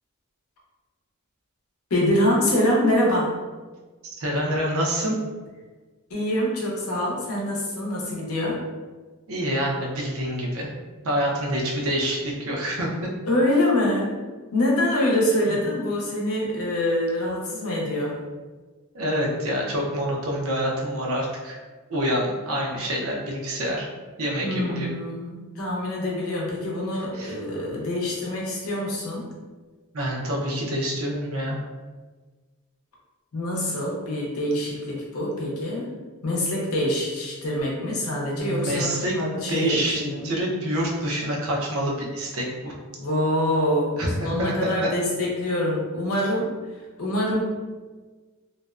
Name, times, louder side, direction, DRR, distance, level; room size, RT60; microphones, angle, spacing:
voice 1, 1.9-3.4 6.1-8.6 13.3-14.2 14.5-18.3 24.4-29.3 33.3-35.9 36.2-40.3 43.0-46.5 47.0-47.4, left 1 dB, 80° left, -3 dB, 0.7 m, -25 dB
voice 2, 4.2-5.1 9.3-10.7 11.0-12.9 18.9-21.6 21.9-23.9 24.2-24.9 27.1-27.3 29.9-31.6 38.4-39.1 39.5-42.7 44.0-44.9, equal, 70° right, -2 dB, 0.6 m, -26 dB
2.5 x 2.1 x 2.3 m, 1.3 s
head